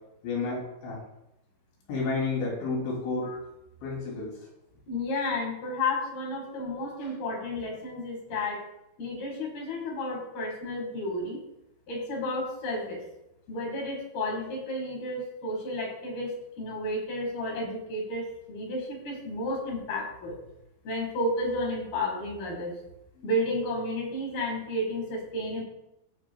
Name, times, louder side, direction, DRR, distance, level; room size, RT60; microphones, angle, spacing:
voice 1, 0.2-1.0 1.9-3.3 3.8-4.3, left 3 dB, 80° left, -3 dB, 5.1 m, -30 dB
voice 2, 4.9-8.6 9.0-11.4 11.9-13.0 13.5-20.4 20.9-22.8 23.2-25.6, left 1 dB, 60° left, 0 dB, 3.6 m, -32 dB
16.5 x 6.3 x 2.3 m, 0.85 s
omnidirectional pair, 5.1 m